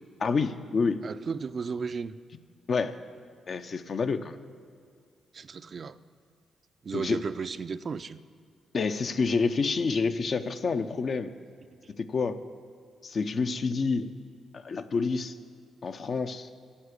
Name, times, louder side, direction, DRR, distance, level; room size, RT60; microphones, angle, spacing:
voice 1, 0.2-1.0 2.7-3.0 3.5-4.4 6.9-7.2 8.7-11.3 12.0-12.4 13.0-14.1 14.5-15.3 15.8-16.5, left 4 dB, 55° left, 9 dB, 0.5 m, -28 dB
voice 2, 1.0-2.2 5.3-6.0 6.8-8.2, right 5 dB, 50° right, 13 dB, 0.3 m, -34 dB
9.7 x 5.8 x 8.1 m, 2.3 s
supercardioid pair, 60°, 0 cm